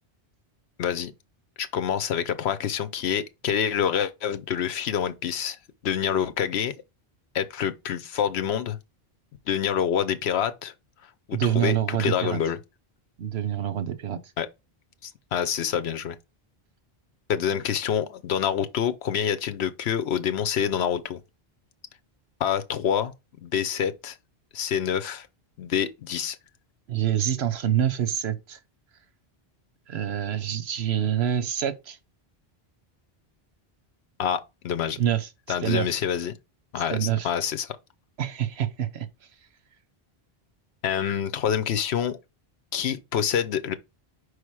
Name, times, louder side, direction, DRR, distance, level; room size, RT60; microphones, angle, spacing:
voice 1, 0.8-1.1 1.6-5.6 5.8-6.7 7.3-8.8 9.5-10.7 11.3-12.6 14.4-14.5 15.0-16.2 17.3-21.2 22.4-23.1 23.4-24.2 24.5-25.3 25.6-26.4 34.2-35.0 35.5-36.4 36.7-37.8 40.8-42.2 42.7-43.7, left 8 dB, 85° left, 1.0 m, -27 dB
voice 2, 11.3-12.4 13.2-14.2 26.9-28.6 29.9-32.0 35.0-35.3 35.6-36.0 36.9-37.3 38.2-39.1, right 10 dB, 80° right, 1.1 m, -26 dB
5.0 x 4.9 x 4.7 m
omnidirectional pair, 1.1 m